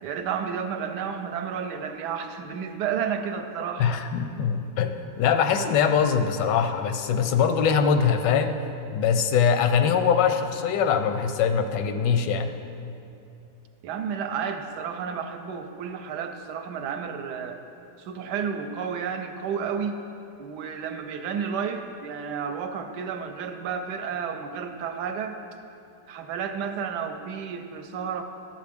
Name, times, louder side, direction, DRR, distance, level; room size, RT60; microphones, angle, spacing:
voice 1, 0.0-4.0 13.8-17.6 18.0-20.0 20.4-25.4 26.1-28.2, right 7 dB, 75° right, 7 dB, 1.1 m, -31 dB
voice 2, 3.8-8.6 8.9-12.5, left 7 dB, 85° left, 8 dB, 1.2 m, -22 dB
11.5 x 7.4 x 3.5 m, 2.7 s
omnidirectional pair, 1.9 m